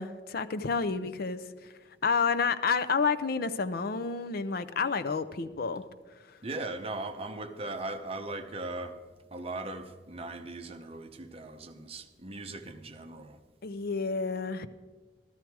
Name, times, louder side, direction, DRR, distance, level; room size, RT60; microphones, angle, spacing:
voice 1, 0.0-1.4 2.0-5.8 13.6-14.7, left 5 dB, 55° left, 12 dB, 0.5 m, -29 dB
voice 2, 6.4-9.0 9.3-13.4, right 2 dB, 35° right, 7 dB, 0.8 m, -39 dB
14.0 x 13.5 x 4.6 m, 1.4 s
head